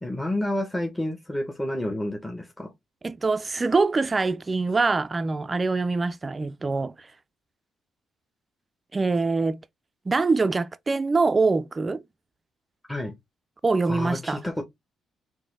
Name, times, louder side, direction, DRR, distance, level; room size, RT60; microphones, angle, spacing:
voice 1, 0.0-2.7 12.9-13.2 13.9-14.6, left 1 dB, 10° left, 0.8 m, -29 dB
voice 2, 3.0-6.9 8.9-9.6 10.1-12.0 13.6-14.4, right 3 dB, 25° right, 0.3 m, -24 dB
4.0 x 2.6 x 3.7 m
cardioid pair, 90°, 0 cm